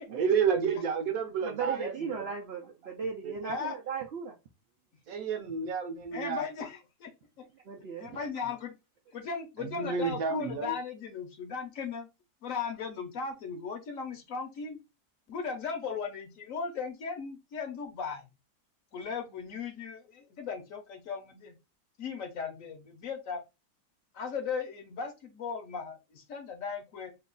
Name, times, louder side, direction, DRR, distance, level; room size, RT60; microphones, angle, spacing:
voice 1, 0.1-2.2 3.2-3.3 5.1-6.4 9.6-10.7, right 6 dB, 65° right, 1.1 m, -30 dB
voice 2, 1.4-4.4 7.5-8.3, right 6 dB, 85° right, 0.5 m, -37 dB
voice 3, 3.4-3.8 6.1-7.1 7.4-7.5 8.0-8.7 9.1-12.1 12.4-14.8 15.3-18.3 18.9-21.5 22.0-23.4 24.1-27.1, left 5 dB, 60° left, 1.0 m, -37 dB
3.0 x 2.3 x 3.6 m
omnidirectional pair, 1.7 m